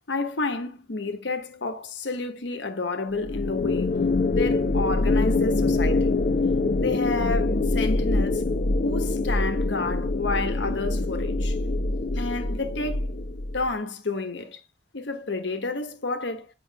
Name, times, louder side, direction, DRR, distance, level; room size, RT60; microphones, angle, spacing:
voice 1, 0.1-4.0 4.3-6.2 6.8-8.4 8.8-11.6 12.1-13.2 13.5-14.6 14.9-16.5, left 3 dB, 85° left, 1.0 m, -30 dB
sound 1, 3.2-13.7, left 2 dB, 50° left, 0.5 m, -24 dB
8.4 x 5.6 x 2.2 m
head